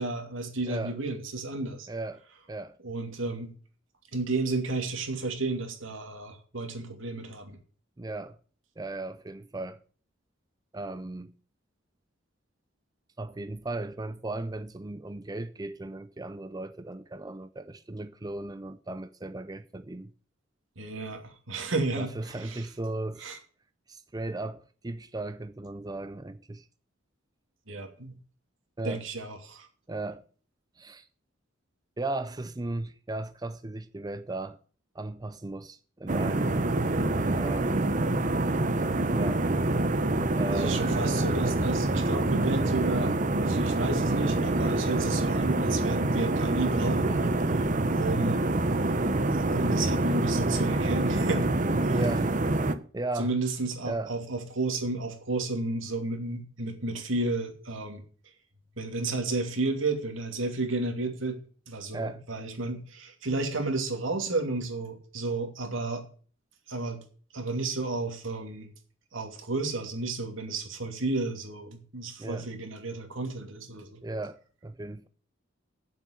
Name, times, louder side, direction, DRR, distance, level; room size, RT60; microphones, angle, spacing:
voice 1, 0.0-1.9 2.8-3.5 4.1-7.6 20.8-22.6 23.2-23.4 27.7-28.2 28.8-29.7 37.5-37.8 40.5-43.1 43.4-47.3 47.9-48.5 48.8-51.5 51.8-52.0 53.2-58.0 58.8-61.4 61.7-66.0 66.7-67.0 67.3-68.7 69.1-74.0, right 3 dB, 85° right, 2.7 m, -32 dB
voice 2, 1.9-2.2 2.5-2.8 8.0-8.4 8.8-9.8 10.7-11.3 13.2-20.1 22.0-23.3 23.9-26.7 28.8-29.0 29.9-30.2 30.8-31.1 32.0-34.6 34.9-36.5 37.4-37.9 39.1-39.4 40.4-41.0 51.9-52.3 52.9-53.3 53.9-54.1 61.9-62.2 72.2-72.5 74.0-75.1, right 2 dB, 20° right, 0.5 m, -36 dB
sound 1, 36.1-52.8, right 2 dB, 40° right, 0.9 m, -26 dB
8.9 x 7.7 x 8.0 m
head